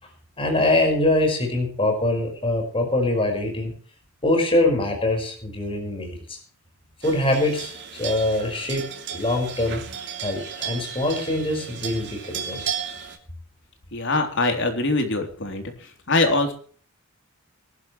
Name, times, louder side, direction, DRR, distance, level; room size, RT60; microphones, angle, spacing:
voice 1, 0.4-3.7 4.2-6.4 7.0-9.8 10.2-12.8, left 1 dB, 25° left, 2 dB, 5.4 m, -23 dB
sound 1, 7.0-13.2, right 8 dB, 55° right, 3.2 m, -34 dB
voice 2, 13.9-15.6 16.1-16.5, left 2 dB, 60° left, 5 dB, 3.6 m, -22 dB
22.5 x 12.0 x 3.3 m, 0.43 s
head